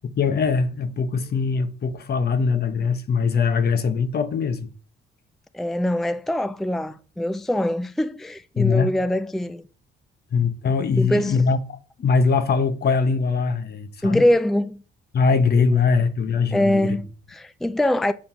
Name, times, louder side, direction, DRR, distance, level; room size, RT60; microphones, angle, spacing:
voice 1, 0.2-4.7 8.6-8.9 10.3-14.3 15.1-17.0, left 5 dB, 55° left, 1.1 m, -22 dB
voice 2, 5.5-9.6 11.0-11.4 14.0-14.8 16.5-18.1, left 1 dB, ahead, 0.4 m, -23 dB
7.7 x 4.3 x 5.6 m
cardioid pair, 90°, 20 cm